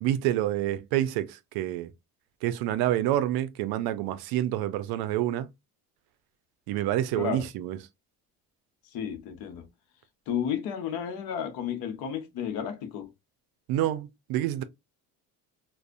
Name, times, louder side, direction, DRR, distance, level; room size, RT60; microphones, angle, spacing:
voice 1, 0.0-1.9 2.4-5.5 6.7-7.8 13.7-14.6, right 13 dB, 75° right, 0.5 m, -28 dB
voice 2, 7.1-7.5 8.9-9.6 10.3-13.1, left 8 dB, 75° left, 0.8 m, -32 dB
2.5 x 2.1 x 2.4 m
cardioid pair, 105°, 37 cm